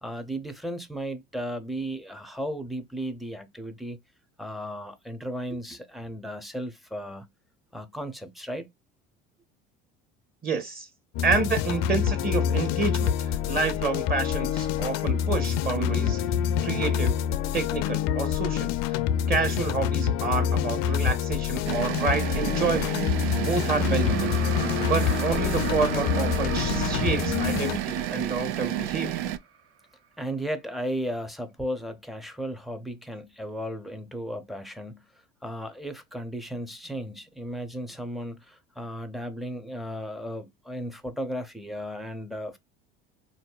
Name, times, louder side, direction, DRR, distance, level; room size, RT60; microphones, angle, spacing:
voice 1, 0.0-4.0 4.4-7.3 7.7-8.7 30.2-42.6, equal, ahead, 0.6 m, -35 dB
voice 2, 10.4-10.9 11.2-16.2 16.6-17.1 17.5-18.7 19.3-23.0 23.4-24.4 24.8-29.3, right 4 dB, 30° right, 1.1 m, -29 dB
sound 1, 11.1-27.8, left 9 dB, 65° left, 0.5 m, -26 dB
sound 2, 21.7-29.4, right 12 dB, 75° right, 0.5 m, -31 dB
sound 3, 22.8-30.1, right 7 dB, 50° right, 0.8 m, -43 dB
4.1 x 2.6 x 2.2 m
hypercardioid pair, 85°, 29 cm